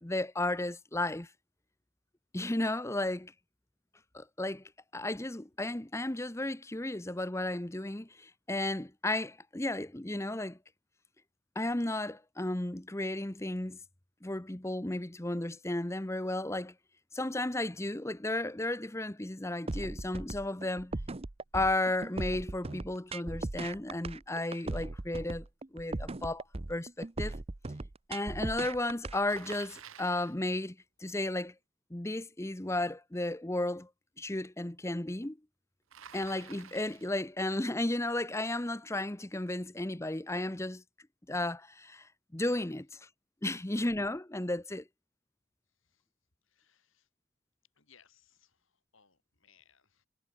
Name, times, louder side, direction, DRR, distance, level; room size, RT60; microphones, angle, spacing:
voice 1, 0.0-1.3 2.3-3.3 4.1-4.6 4.9-10.6 11.6-13.8 14.2-16.7 17.1-20.9 21.5-25.5 25.7-26.4 26.7-27.3 28.1-31.5 31.9-33.9 34.2-35.4 36.1-40.8 41.3-43.1 43.4-44.8, left 1 dB, 15° left, 0.8 m, -34 dB
sound 1, 19.7-29.6, right 2 dB, 25° right, 0.6 m, -38 dB
Bicycle, 29.3-30.4 35.9-37.2, right 8 dB, 70° right, 1.1 m, -51 dB
voice 2, 46.4-47.1 47.8-50.1, left 7 dB, 65° left, 3.4 m, -66 dB
head